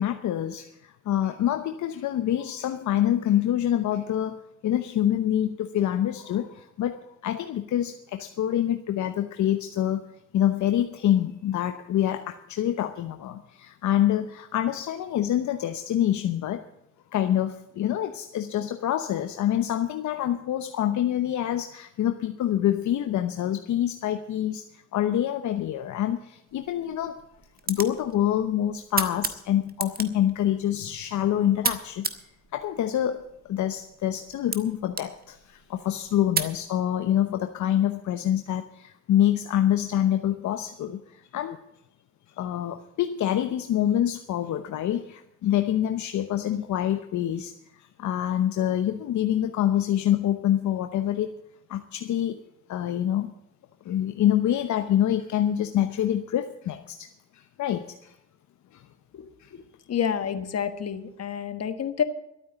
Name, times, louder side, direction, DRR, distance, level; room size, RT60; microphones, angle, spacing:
voice 1, 0.0-10.0 10.3-16.6 17.1-27.2 27.7-32.1 32.5-33.2 33.5-41.6 42.4-51.3 51.7-52.4 52.7-53.3 53.8-57.1 57.3-58.1 58.7-58.8 59.4-59.5, left 11 dB, 70° left, 7 dB, 0.9 m, -26 dB
sound 1, 26.5-36.6, right 5 dB, 30° right, 1.4 m, -36 dB
voice 2, 59.9-62.0, left 8 dB, 55° left, 9 dB, 1.5 m, -28 dB
12.5 x 9.1 x 8.1 m, 0.85 s
cardioid pair, 90°, 30 cm